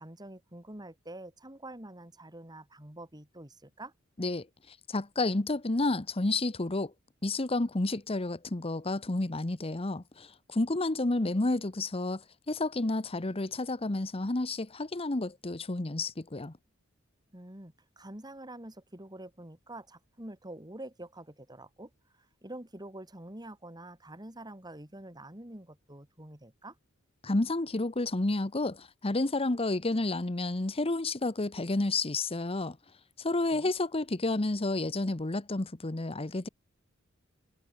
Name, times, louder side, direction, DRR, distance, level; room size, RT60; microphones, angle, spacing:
voice 1, 0.0-3.9 17.3-21.9 22.2-26.8 33.5-33.7, right 1 dB, 20° right, 4.0 m, -46 dB
voice 2, 4.2-6.9 7.2-16.5 27.2-32.8 33.2-36.5, left 2 dB, 30° left, 1.0 m, -30 dB
head